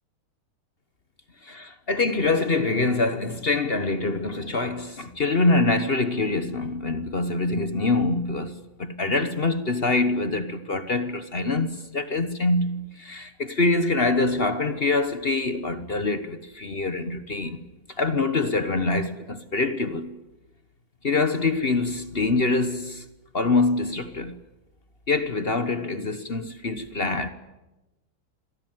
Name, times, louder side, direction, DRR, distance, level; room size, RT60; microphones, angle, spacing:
voice 1, 1.5-17.6 18.0-20.2 21.0-23.0 23.3-24.4 25.1-27.3, left 3 dB, 35° left, 1.1 m, -25 dB
27.0 x 21.0 x 9.4 m
omnidirectional pair, 2.3 m